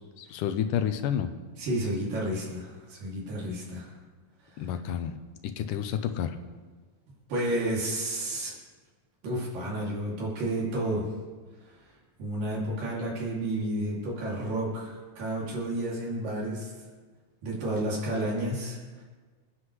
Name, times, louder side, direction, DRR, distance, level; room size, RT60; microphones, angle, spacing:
voice 1, 0.2-1.3 4.6-5.2 5.4-6.4, left 9 dB, 85° left, 9 dB, 2.2 m, -30 dB
voice 2, 1.6-3.9 4.5-4.7 7.3-8.5 9.2-11.1 12.2-16.7 17.4-18.8, right 1 dB, 85° right, -5 dB, 4.3 m, -31 dB
26.0 x 9.7 x 3.2 m, 1.4 s
omnidirectional pair, 3.8 m